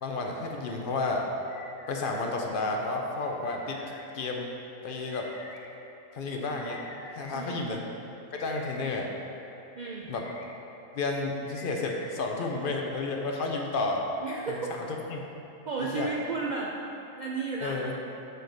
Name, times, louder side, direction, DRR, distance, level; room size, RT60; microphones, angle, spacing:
voice 1, 0.0-1.2 1.9-3.8 4.1-4.5 4.8-5.3 6.1-6.8 7.1-7.8 8.3-9.1 10.1-10.2 10.9-14.0 14.5-15.2 15.9-16.1 17.6-17.9, left 3 dB, 55° left, 1 dB, 0.6 m, -31 dB
sound 1, 1.5-2.3 3.4-4.0 5.1-5.6 6.6-7.4 8.3-8.9 9.9-10.5 11.5-12.1, left 3 dB, 90° left, 1.1 m, -47 dB
voice 2, 7.3-7.6 9.7-10.1 14.2-14.7 15.7-16.8 17.2-17.8, right 4 dB, 65° right, -4 dB, 0.4 m, -33 dB
6.6 x 5.0 x 4.0 m, 2.9 s
omnidirectional pair, 1.4 m